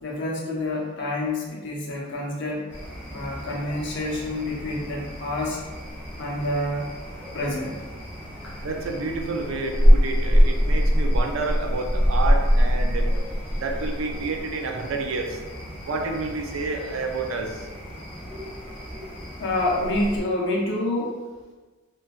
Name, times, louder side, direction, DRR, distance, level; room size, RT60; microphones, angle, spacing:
voice 1, 0.0-2.6 3.1-5.6 6.2-6.9 7.3-7.7 8.4-8.5 19.4-21.2, left 1 dB, 60° left, -3 dB, 0.7 m, -27 dB
sound 1, 2.7-20.2, equal, 10° left, 0.8 m, -25 dB
voice 2, 8.6-13.2 13.5-15.4 15.8-17.7, right 3 dB, 80° right, 3 dB, 0.4 m, -29 dB
3.8 x 2.3 x 2.4 m, 1.3 s
head